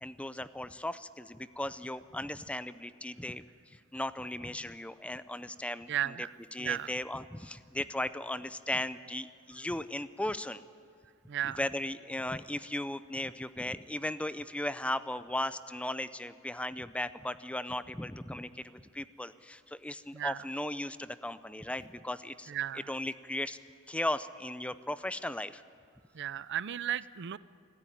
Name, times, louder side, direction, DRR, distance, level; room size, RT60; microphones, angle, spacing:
voice 1, 0.0-3.4 3.7-6.1 6.5-10.6 11.6-22.5 22.9-23.6 23.9-25.6, left 1 dB, 5° left, 14 dB, 0.5 m, -37 dB
voice 2, 5.9-6.3 6.6-6.9 11.3-11.6 20.1-20.4 22.5-22.9 26.1-27.4, right 11 dB, 55° right, 18 dB, 0.5 m, -34 dB
25.5 x 14.5 x 10.0 m, 2.3 s
head